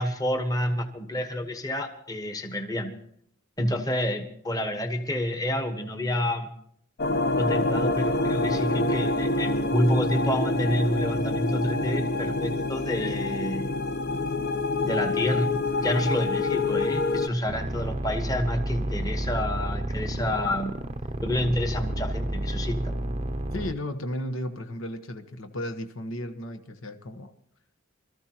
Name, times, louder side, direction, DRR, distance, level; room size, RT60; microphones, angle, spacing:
voice 1, 0.0-2.9 3.6-6.5 7.4-13.7 14.8-20.7 21.2-22.9, left 1 dB, 15° left, 6 dB, 1.2 m, -28 dB
sound 1, 7.0-17.3, left 2 dB, 50° left, 0.8 m, -26 dB
sound 2, 17.5-23.7, right 1 dB, 30° right, 0.6 m, -31 dB
voice 2, 23.5-27.3, left 1 dB, 80° left, 7 dB, 1.1 m, -34 dB
25.5 x 14.0 x 2.9 m, 0.66 s
head